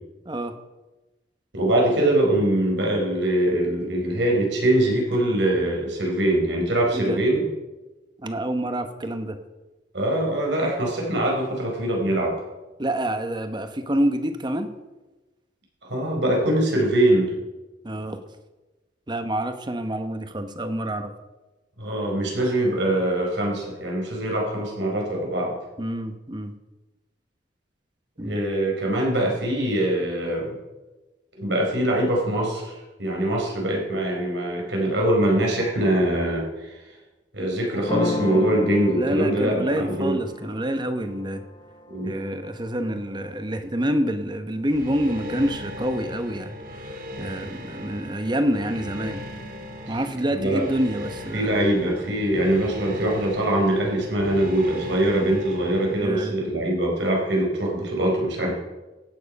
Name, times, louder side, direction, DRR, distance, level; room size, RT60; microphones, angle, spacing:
voice 1, 1.5-7.4 9.9-12.3 15.8-17.3 21.8-25.5 28.2-30.6 31.4-32.7 33.0-36.8 37.3-40.2 41.9-42.1 49.9-50.0 50.3-50.6 51.3-58.5, right 1 dB, 90° right, -1 dB, 4.5 m, -23 dB
voice 2, 8.2-9.4 12.8-14.7 17.8-18.2 19.1-21.1 25.8-26.5 28.2-28.4 38.9-41.4 42.0-46.6 46.8-49.2 49.9-51.7 56.0-56.3, right 1 dB, 25° right, 8 dB, 1.0 m, -27 dB
sound 1, 37.9-43.4, left 2 dB, 25° left, 0.9 m, -33 dB
sound 2, 44.7-56.0, left 1 dB, 55° right, 2.1 m, -37 dB
15.0 x 9.5 x 5.3 m, 1.1 s
head